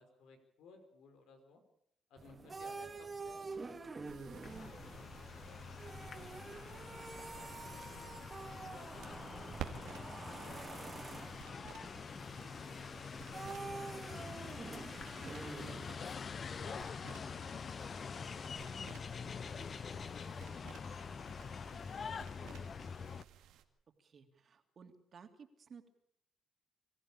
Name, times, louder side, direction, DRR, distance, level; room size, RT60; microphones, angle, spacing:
voice 1, 0.0-1.6 2.1-8.1 8.7-12.1 12.5-14.8 15.4-19.8 21.1-22.1 22.4-22.6, left 3 dB, 85° left, 6 dB, 5.0 m, -60 dB
sound 1, 2.2-16.2, right 3 dB, 30° right, 2.4 m, -48 dB
sound 2, 4.0-23.6, right 10 dB, 90° right, 2.1 m, -55 dB
sound 3, 4.4-23.2, left 6 dB, 45° left, 0.8 m, -45 dB
voice 2, 24.0-25.9, right 6 dB, 50° right, 6 dB, 3.0 m, -57 dB
25.0 x 15.0 x 8.7 m, 0.71 s
cardioid pair, 90°, 0 cm